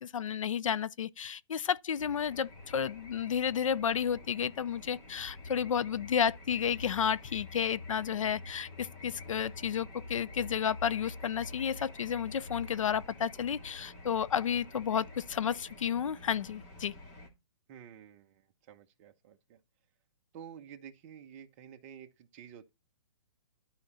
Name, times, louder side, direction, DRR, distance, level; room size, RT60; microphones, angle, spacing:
voice 1, 0.0-16.9, left 8 dB, 80° left, 0.6 m, -32 dB
sound 1, 2.0-17.3, left 2 dB, 25° left, 2.3 m, -48 dB
voice 2, 17.7-19.6 20.3-22.7, right 8 dB, 25° right, 1.1 m, -51 dB
12.0 x 5.1 x 4.3 m
hypercardioid pair, 165°, 16 cm